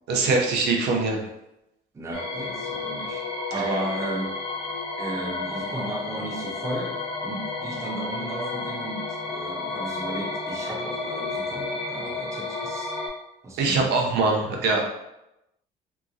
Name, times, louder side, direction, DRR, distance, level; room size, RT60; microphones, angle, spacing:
voice 1, 0.1-1.2 13.6-14.8, right 3 dB, 80° right, 0 dB, 0.7 m, -22 dB
voice 2, 1.9-4.4 5.0-13.0 13.4-14.6, right 1 dB, 15° right, 1 dB, 0.4 m, -34 dB
sound 1, 2.1-13.1, left 3 dB, 35° left, 0.6 m, -32 dB
2.9 x 2.5 x 2.4 m, 0.89 s
cardioid pair, 110°, 17 cm